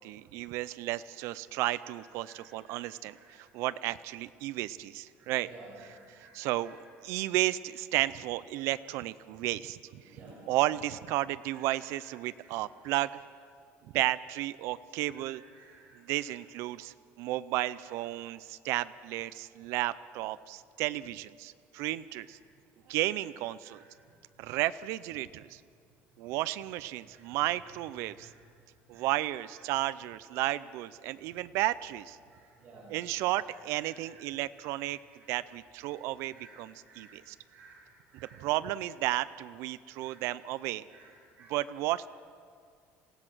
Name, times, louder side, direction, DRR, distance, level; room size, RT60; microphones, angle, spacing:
voice 1, 0.0-5.5 6.1-6.8 7.0-10.0 10.5-13.2 13.9-15.4 15.9-22.4 22.9-23.8 24.4-25.6 26.2-28.3 28.9-32.2 32.9-35.0 35.3-37.4 38.1-40.8 41.5-42.1, right 16 dB, 65° right, 15 dB, 0.5 m, -33 dB
voice 2, 2.2-2.8 3.1-3.3 5.2-6.3 6.6-6.8 10.0-10.5 11.4-11.9 12.4-12.5 15.1-16.0 22.2-22.3 23.0-23.1 23.6-23.8 27.1-27.3 28.1-28.3 28.9-29.3 32.3-32.9 33.5-34.2 34.7-34.9 35.2-35.4 35.8-36.0 36.3-37.2 37.5-37.8 38.1-38.4 39.9-40.2 40.9-41.5, right 3 dB, 30° right, -6 dB, 6.3 m, -55 dB
28.0 x 16.5 x 6.1 m, 2.2 s
cardioid pair, 175°, 5 cm